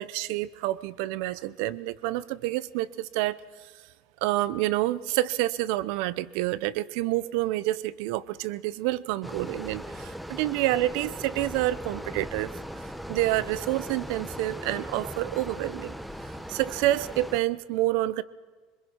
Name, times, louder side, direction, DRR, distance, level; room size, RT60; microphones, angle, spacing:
voice 1, 0.0-3.4 4.2-12.5 13.1-15.9 16.5-18.2, right 16 dB, 70° right, 18 dB, 0.7 m, -28 dB
sound 1, 9.2-17.4, equal, ahead, 1.0 m, -39 dB
22.0 x 21.5 x 5.8 m, 1.4 s
supercardioid pair, 110°, 0 cm